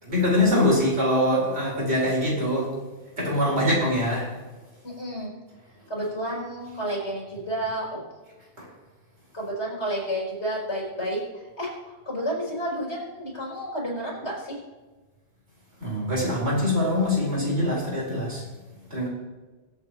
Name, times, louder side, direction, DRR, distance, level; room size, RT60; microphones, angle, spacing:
voice 1, 0.0-2.7 3.2-4.3 8.6-8.7 15.8-18.4 18.9-19.1, left 1 dB, 65° right, -4 dB, 4.6 m, -23 dB
voice 2, 4.8-5.3 5.9-8.0 9.3-14.6, right 1 dB, 65° left, -4 dB, 4.6 m, -31 dB
24.0 x 8.1 x 3.0 m, 1.3 s
omnidirectional pair, 1.2 m